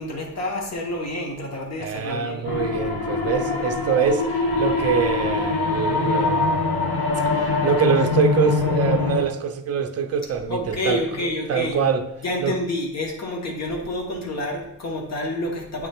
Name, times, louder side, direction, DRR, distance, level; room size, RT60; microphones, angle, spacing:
voice 1, 0.0-2.5 10.5-11.8 12.2-15.9, left 1 dB, 50° left, 1.2 m, -28 dB
voice 2, 1.8-12.1 12.4-12.6, right 6 dB, 45° right, 0.5 m, -24 dB
sound 1, 2.4-9.2, left 4 dB, 90° left, 1.1 m, -23 dB
8.6 x 3.2 x 3.5 m
wide cardioid pair, 175°, 35 cm